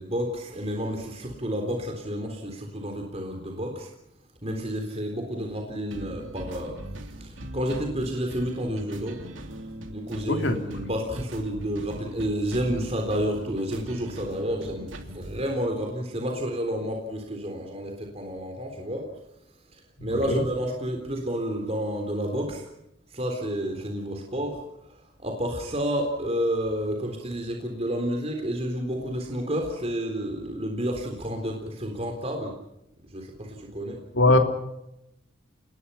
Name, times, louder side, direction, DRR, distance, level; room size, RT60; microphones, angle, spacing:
voice 1, 0.0-3.9 4.4-9.2 9.9-19.1 19.7-22.6 23.1-32.5 33.1-34.0, equal, 30° right, 2 dB, 3.8 m, -30 dB
sound 1, 5.9-15.5, right 1 dB, 80° right, 3.0 m, -41 dB
voice 2, 10.3-10.6 20.0-20.4 34.1-34.4, left 2 dB, 70° left, 5 dB, 3.2 m, -21 dB
29.0 x 20.5 x 5.7 m, 0.84 s
head